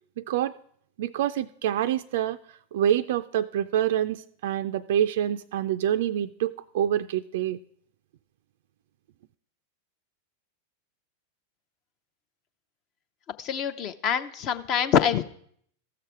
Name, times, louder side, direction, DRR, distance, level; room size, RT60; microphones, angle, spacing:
voice 1, 0.2-0.5 1.0-2.4 2.7-7.6, right 10 dB, 55° right, 11 dB, 0.3 m, -26 dB
voice 2, 13.4-15.2, left 8 dB, 40° left, 12 dB, 0.6 m, -25 dB
14.5 x 6.8 x 4.6 m, 0.64 s
figure-of-eight pair, 90°, 0 cm